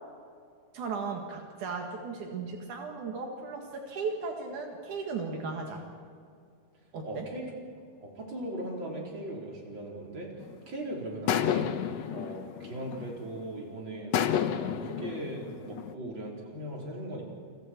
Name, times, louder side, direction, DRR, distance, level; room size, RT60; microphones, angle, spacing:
voice 1, 0.7-5.8 6.9-7.3, right 4 dB, 80° right, 1 dB, 3.5 m, -36 dB
voice 2, 7.0-7.5 8.0-10.3 10.7-11.7 12.1-14.2 14.5-17.2, right 1 dB, 40° right, -2 dB, 5.0 m, -39 dB
sound 1, 10.4-10.7 11.3-13.4 14.1-15.9, left 9 dB, 65° left, 2.0 m, -31 dB
30.0 x 25.0 x 4.6 m, 2.3 s
omnidirectional pair, 3.4 m